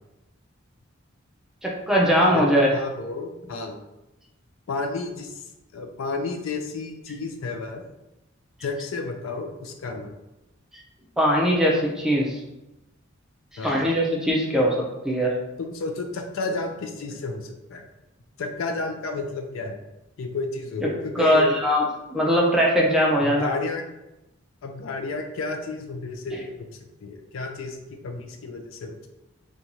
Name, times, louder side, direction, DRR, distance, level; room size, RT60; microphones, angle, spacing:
voice 1, 1.6-2.7 11.2-12.4 13.6-15.3 21.2-21.8 22.1-23.5, equal, 5° right, -2 dB, 0.4 m, -20 dB
voice 2, 2.3-3.8 4.7-5.3 5.7-7.8 8.6-10.1 13.6-13.8 15.6-17.9 18.4-19.8 20.2-21.5 23.2-23.8 24.6-26.7 27.0-29.1, left 3 dB, 70° left, 4 dB, 0.4 m, -31 dB
2.6 x 2.2 x 2.9 m, 0.95 s
head